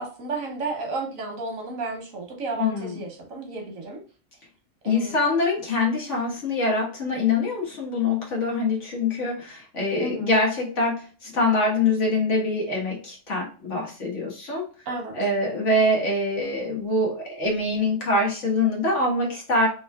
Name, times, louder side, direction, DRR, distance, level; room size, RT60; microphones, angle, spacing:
voice 1, 0.0-4.0 4.8-5.2 10.0-10.3 14.9-15.2, right 3 dB, 80° right, 2 dB, 1.4 m, -32 dB
voice 2, 2.6-3.0 4.8-14.7 15.1-19.7, left 2 dB, 65° left, -2 dB, 1.7 m, -24 dB
3.6 x 3.1 x 2.2 m, 0.38 s
omnidirectional pair, 1.3 m